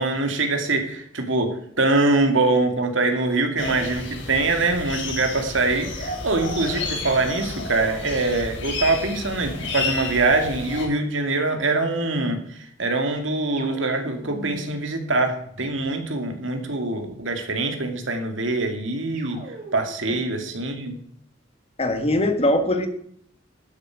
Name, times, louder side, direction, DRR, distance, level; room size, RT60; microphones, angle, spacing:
voice 1, 0.0-19.4 19.7-20.9, right 2 dB, 75° right, 5 dB, 2.4 m, -24 dB
sound 1, 3.6-10.9, left 3 dB, 65° left, 4.2 m, -31 dB
sound 2, 13.6-16.0 19.1-20.2, right 1 dB, 45° right, 3.0 m, -42 dB
voice 2, 21.8-22.9, left 1 dB, 30° left, 8 dB, 1.5 m, -21 dB
12.5 x 10.0 x 4.8 m, 0.65 s
head